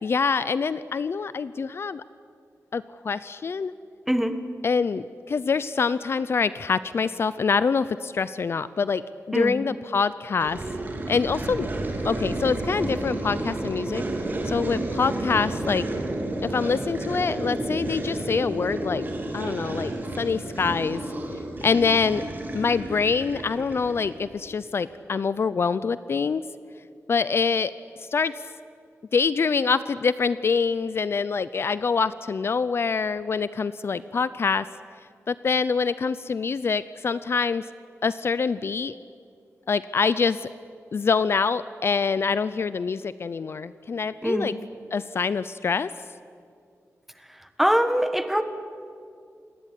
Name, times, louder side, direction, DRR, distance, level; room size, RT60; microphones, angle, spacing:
voice 1, 0.0-2.0 2.7-3.7 4.6-9.0 9.3-10.6 11.1-11.7 12.0-14.0 14.4-15.8 16.4-19.0 19.3-21.0 21.6-22.2 22.5-26.4 27.1-27.7 28.0-28.3 29.1-34.7 35.3-37.6 38.0-39.0 39.7-40.5 40.9-44.5 44.9-45.9, left 5 dB, 50° left, 15 dB, 0.6 m, -25 dB
voice 2, 4.1-4.4 9.3-9.6 44.2-44.5 47.6-48.4, equal, 5° right, 9 dB, 1.5 m, -22 dB
sound 1, 10.4-24.3, right 1 dB, 35° right, 3.5 m, -31 dB
27.5 x 19.5 x 9.9 m, 2.3 s
wide cardioid pair, 170°, 5 cm